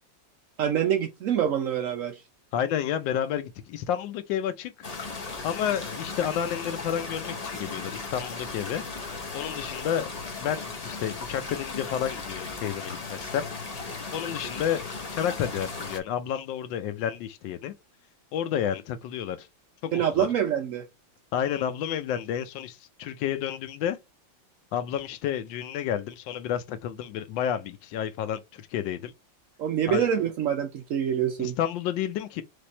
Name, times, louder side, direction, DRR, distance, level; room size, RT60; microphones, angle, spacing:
voice 1, 0.6-2.2 19.9-20.8 29.6-31.5, right 9 dB, 65° right, 0.8 m, -26 dB
voice 2, 2.5-4.7 5.4-8.8 9.3-10.1 10.4-13.5 14.1-17.7 18.3-19.5 19.8-20.3 21.3-24.0 24.7-29.1 29.9-30.1 31.4-32.4, left 9 dB, 75° left, 1.3 m, -30 dB
sound 1, 4.8-16.0, left 4 dB, 55° left, 0.4 m, -36 dB
3.4 x 3.4 x 4.0 m
omnidirectional pair, 2.1 m